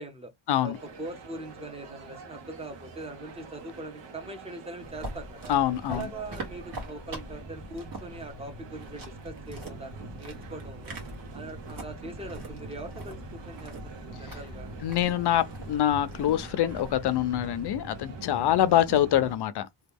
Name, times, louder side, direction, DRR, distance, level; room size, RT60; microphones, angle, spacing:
voice 1, 0.0-0.3 0.6-5.5 5.9-11.0 11.3-14.7, right 2 dB, 15° right, 0.7 m, -41 dB
sound 1, 0.7-19.4, right 3 dB, 65° right, 1.1 m, -44 dB
sound 2, 4.8-17.4, right 1 dB, 45° right, 1.4 m, -43 dB
voice 2, 5.5-6.1 14.8-19.7, left 11 dB, 60° left, 0.5 m, -25 dB
2.9 x 2.3 x 3.4 m
wide cardioid pair, 160°, 46 cm